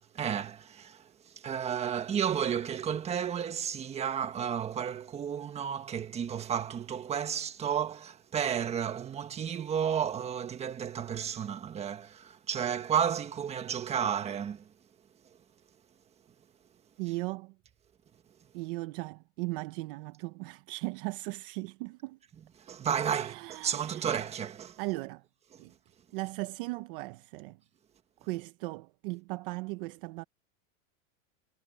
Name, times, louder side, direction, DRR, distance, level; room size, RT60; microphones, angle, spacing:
voice 1, 0.1-14.7 22.6-24.8 25.5-25.6, right 8 dB, 15° right, 1.5 m, -32 dB
voice 2, 17.0-17.6 18.5-22.2 23.1-24.1 24.8-25.2 25.6-25.7 26.1-27.6 28.2-30.2, right 22 dB, 40° right, 0.8 m, -37 dB
supercardioid pair, 165°, 40 cm